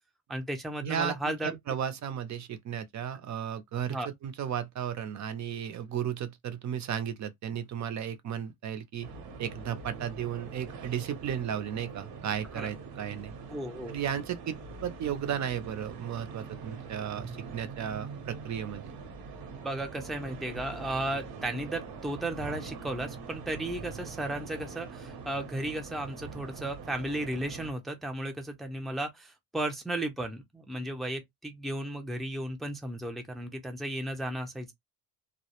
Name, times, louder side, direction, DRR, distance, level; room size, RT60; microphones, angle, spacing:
voice 1, 0.3-1.6 3.9-4.1 12.6-12.7 13.5-14.0 19.6-34.7, right 1 dB, ahead, 0.4 m, -34 dB
voice 2, 0.8-9.1 9.4-13.3 13.9-14.6 14.8-18.9, right 9 dB, 50° right, 0.5 m, -34 dB
sound 1, 9.0-27.7, right 4 dB, 80° right, 0.8 m, -43 dB
2.2 x 2.0 x 2.8 m
cardioid pair, 115°, 36 cm